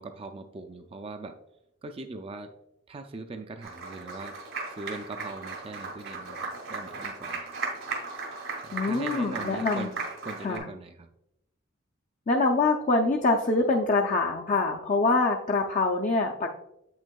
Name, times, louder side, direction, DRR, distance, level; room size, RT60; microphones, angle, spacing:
voice 1, 0.0-1.4 1.8-2.5 2.9-4.4 4.8-7.5 8.6-10.0 10.2-11.1, right 3 dB, 25° right, 6 dB, 0.3 m, -40 dB
Applause, 3.6-10.6, right 4 dB, 85° right, 1.9 m, -36 dB
voice 2, 8.7-9.9 10.4-10.6 12.3-16.5, left 3 dB, 40° left, 2 dB, 0.5 m, -25 dB
8.1 x 6.2 x 2.3 m, 0.84 s
head